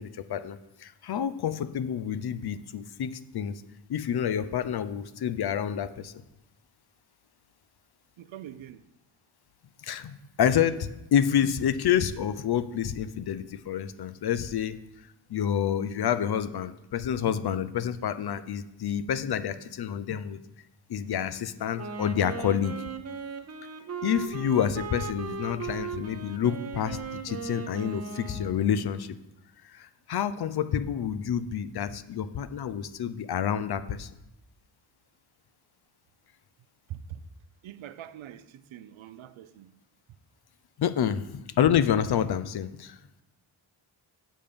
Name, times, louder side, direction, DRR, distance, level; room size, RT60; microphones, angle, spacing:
voice 1, 0.0-3.6 3.9-6.1 9.8-14.8 15.3-20.4 20.9-22.8 24.0-27.0 27.2-29.2 29.6-34.1 40.8-43.2, left 9 dB, 55° left, 0.6 m, -28 dB
voice 2, 8.2-8.8 36.9-37.2 37.6-39.7, right 10 dB, 80° right, 0.6 m, -43 dB
Wind instrument woodwind instrument, 21.7-28.8, right 5 dB, 35° right, 0.6 m, -37 dB
7.6 x 5.2 x 6.8 m
wide cardioid pair, 155°, 46 cm